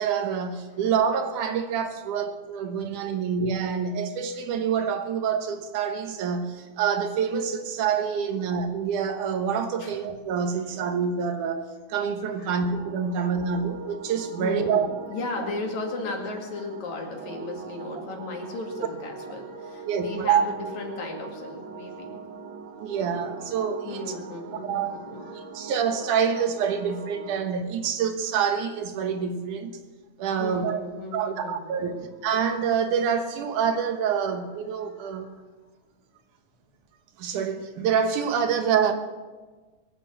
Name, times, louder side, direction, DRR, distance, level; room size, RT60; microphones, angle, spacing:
voice 1, 0.0-14.9 19.8-20.4 22.8-24.0 24.6-25.0 25.5-29.7 30.2-30.8 31.1-32.0 32.2-35.3 37.2-38.9, right 7 dB, 85° right, 2.8 m, -26 dB
sound 1, 12.7-27.5, right 4 dB, 65° right, 1.3 m, -41 dB
voice 2, 14.4-22.3 23.8-25.5 30.4-32.2 34.8-35.4, left 2 dB, 70° left, 3.6 m, -36 dB
22.5 x 7.8 x 7.5 m
omnidirectional pair, 3.5 m